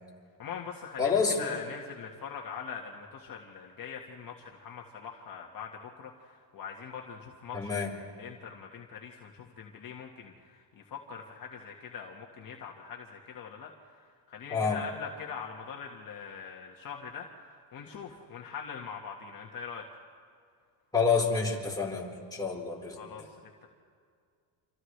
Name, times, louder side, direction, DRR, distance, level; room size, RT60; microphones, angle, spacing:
voice 1, 0.4-7.8 8.2-19.8 23.0-23.5, left 6 dB, 50° left, 0 dB, 1.7 m, -43 dB
voice 2, 1.0-1.5 7.5-7.9 14.5-14.8 20.9-23.3, left 5 dB, 10° left, -4 dB, 4.4 m, -28 dB
29.5 x 26.5 x 3.3 m, 2.1 s
cardioid pair, 110°, 44 cm